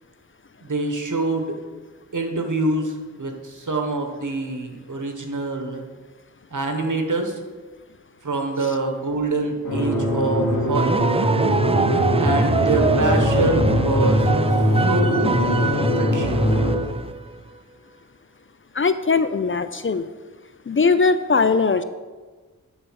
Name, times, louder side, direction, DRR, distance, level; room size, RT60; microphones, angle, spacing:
voice 1, 0.6-1.6 2.1-5.8 6.5-7.3 8.2-11.0 12.2-14.3 14.9-15.3 15.7-16.4, right 2 dB, 65° right, 4 dB, 1.4 m, -25 dB
sound 1, 9.6-16.7, left 1 dB, 75° left, 2.2 m, -22 dB
sound 2, 10.7-17.2, right 3 dB, 20° right, 0.4 m, -23 dB
voice 2, 18.8-20.1 20.7-21.8, left 4 dB, 40° left, 12 dB, 0.5 m, -20 dB
11.5 x 4.1 x 6.3 m, 1.4 s
cardioid pair, 40°, 33 cm